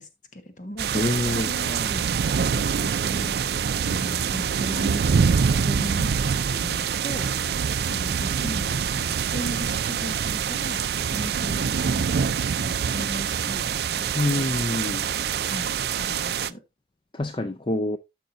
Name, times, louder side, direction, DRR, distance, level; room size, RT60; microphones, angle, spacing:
voice 1, 0.0-0.9 1.3-7.6 7.9-10.8 11.1-14.8 15.4-16.6, equal, 45° left, 1.3 m, -38 dB
sound 1, 0.8-16.5, right 7 dB, 60° right, 0.4 m, -25 dB
voice 2, 0.9-1.5 14.1-15.1 17.1-18.0, left 2 dB, 25° left, 0.4 m, -26 dB
13.0 x 5.7 x 2.6 m
head